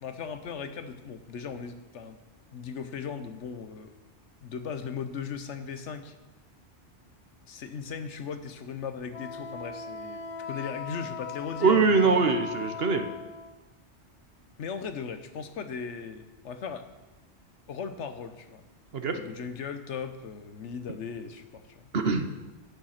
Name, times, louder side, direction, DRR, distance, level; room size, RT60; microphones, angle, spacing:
voice 1, 0.0-2.2 2.5-3.9 4.4-6.1 7.5-12.2 14.6-16.8 17.7-18.7 19.1-21.9, left 6 dB, 75° left, 9 dB, 1.2 m, -38 dB
Wind instrument woodwind instrument, 9.1-13.6, left 5 dB, 40° left, 0.5 m, -39 dB
voice 2, 11.6-13.1 18.9-19.2 21.9-22.3, right 4 dB, 60° right, 7 dB, 1.2 m, -23 dB
10.5 x 9.1 x 5.8 m, 1.1 s
omnidirectional pair, 1.2 m